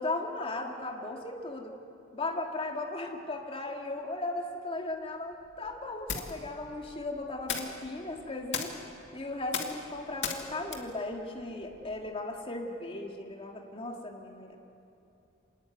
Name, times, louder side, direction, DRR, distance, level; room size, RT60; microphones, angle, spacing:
voice 1, 0.0-1.7 2.1-8.7 9.1-14.6, left 2 dB, 30° left, 1 dB, 2.4 m, -36 dB
sound 1, 4.9-12.2, left 6 dB, 60° left, 2.3 m, -40 dB
27.0 x 19.5 x 9.4 m, 2.8 s
head